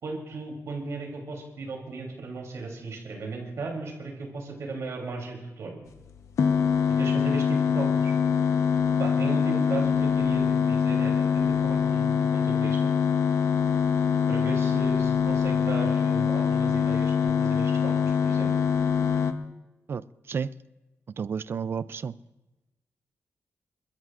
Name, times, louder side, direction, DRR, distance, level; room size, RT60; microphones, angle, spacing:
voice 1, 0.0-5.8 7.0-8.1 9.0-12.9 14.3-18.5, right 3 dB, 70° right, 0 dB, 3.3 m, -36 dB
sound 1, 6.4-19.3, left 7 dB, 75° left, 0.8 m, -24 dB
voice 2, 21.2-22.1, right 6 dB, 45° right, 16 dB, 0.4 m, -31 dB
29.0 x 13.5 x 2.5 m, 1.1 s
wide cardioid pair, 145°, 5 cm